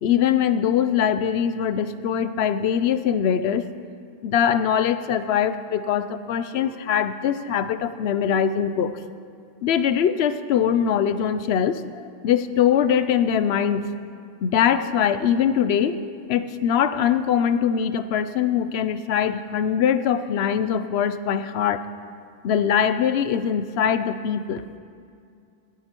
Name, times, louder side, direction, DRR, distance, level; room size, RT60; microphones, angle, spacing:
voice 1, 0.0-3.6 4.2-9.0 9.6-13.9 14.4-16.0 16.3-21.8 22.4-24.7, left 8 dB, 75° left, 12 dB, 0.8 m, -22 dB
16.0 x 13.0 x 3.0 m, 2.4 s
omnidirectional pair, 1.1 m